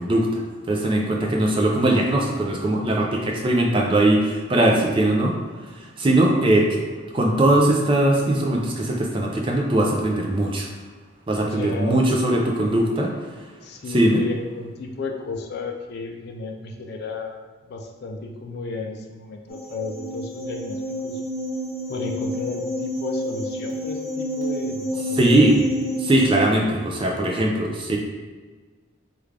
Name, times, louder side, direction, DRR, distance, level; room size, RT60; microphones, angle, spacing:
voice 1, 0.0-5.3 5.8-6.8 7.1-10.7 11.3-13.1 13.9-14.2 25.1-25.6 26.0-28.0, right 1 dB, 25° right, 0 dB, 0.4 m, -20 dB
voice 2, 11.4-12.0 13.6-21.2 21.9-25.4, left 3 dB, 50° left, 3 dB, 0.3 m, -33 dB
sound 1, 19.5-26.3, left 1 dB, 70° left, 0.9 m, -29 dB
3.4 x 2.4 x 3.2 m, 1.4 s
head